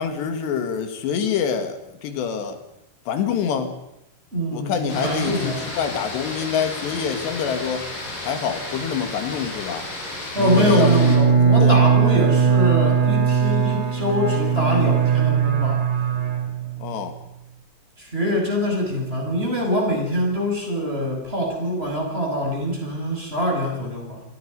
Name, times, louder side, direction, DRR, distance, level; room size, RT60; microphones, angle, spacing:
voice 1, 0.0-2.6 3.1-3.8 4.5-7.9 8.3-9.9 10.4-11.1 11.6-11.8 16.8-17.1, left 7 dB, 80° left, 7 dB, 4.1 m, -26 dB
voice 2, 4.3-5.6 10.3-15.8 18.0-24.2, equal, 15° right, 1 dB, 6.3 m, -24 dB
sound 1, 4.9-11.2, left 2 dB, 50° left, 7.0 m, -33 dB
Bowed string instrument, 10.4-17.0, right 7 dB, 50° right, 4.6 m, -19 dB
29.0 x 21.0 x 5.4 m, 0.87 s
omnidirectional pair, 4.8 m